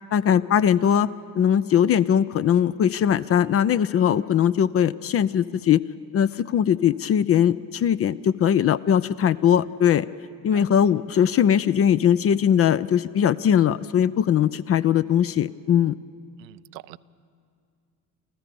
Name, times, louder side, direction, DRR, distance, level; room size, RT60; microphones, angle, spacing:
voice 1, 0.1-1.1 1.4-5.8 6.1-10.1 10.4-15.9, left 9 dB, 30° left, 16 dB, 0.5 m, -20 dB
voice 2, 16.4-17.0, right 19 dB, 80° right, 16 dB, 0.6 m, -43 dB
27.0 x 15.0 x 6.9 m, 2.3 s
hypercardioid pair, 60°, 50 cm